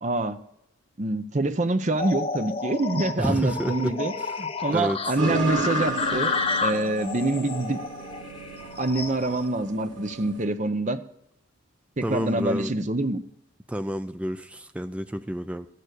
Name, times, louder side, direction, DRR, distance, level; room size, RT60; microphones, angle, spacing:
voice 1, 0.0-0.4 1.0-4.1 4.4-6.3 6.6-7.8 8.8-11.0 12.0-13.2, right 2 dB, 40° right, 9 dB, 0.7 m, -26 dB
sound 1, 1.9-9.5, left 4 dB, 30° left, 0.9 m, -31 dB
voice 2, 3.2-3.9 4.2-4.3 4.7-5.0 12.0-12.7 13.7-15.7, equal, 5° right, 10 dB, 0.4 m, -29 dB
sound 2, 5.2-10.4, right 2 dB, 70° right, 3.4 m, -33 dB
13.5 x 6.7 x 8.1 m, 0.76 s
head